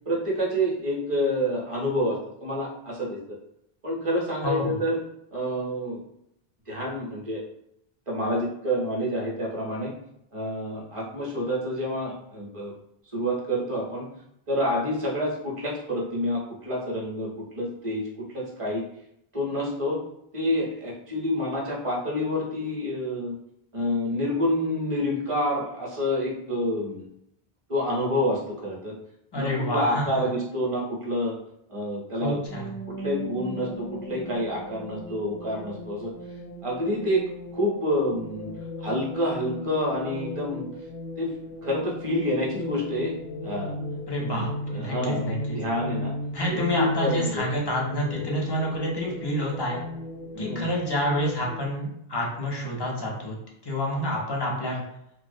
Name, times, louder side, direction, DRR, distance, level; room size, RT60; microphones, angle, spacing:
voice 1, 0.1-3.2 3.8-5.0 5.3-6.0 6.7-7.4 8.1-9.9 10.3-12.7 13.1-14.1 14.5-17.3 17.5-18.0 18.3-18.8 19.3-20.0 20.3-23.3 23.7-27.0 27.7-28.9 29.3-31.4 31.7-32.4 32.9-36.1 36.6-37.2 37.5-38.5 38.8-40.7 41.2-41.3 41.6-43.1 43.4-43.7 44.3-45.3 45.5-46.1 46.7-47.4 50.3-50.7, equal, 40° right, -4 dB, 0.6 m, -28 dB
voice 2, 4.4-4.8 29.3-30.0 32.1-32.7 44.1-45.6 46.3-49.8 50.4-53.4 53.6-54.8, equal, 35° left, -2 dB, 0.4 m, -28 dB
sound 1, 32.5-51.7, left 1 dB, 85° left, 0.8 m, -36 dB
2.3 x 2.0 x 2.5 m, 0.77 s
omnidirectional pair, 1.0 m